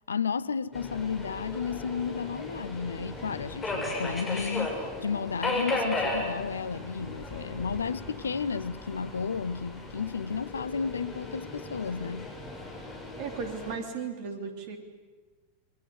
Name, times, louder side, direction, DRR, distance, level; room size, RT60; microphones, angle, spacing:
voice 1, 0.1-12.3, left 6 dB, 70° left, 0.8 m, -33 dB
Subway metro underground, 0.7-13.8, left 2 dB, 20° left, 7.0 m, -36 dB
voice 2, 13.2-14.8, right 5 dB, 50° right, 3.9 m, -36 dB
28.5 x 23.0 x 8.1 m
figure-of-eight pair, 90°, 0 cm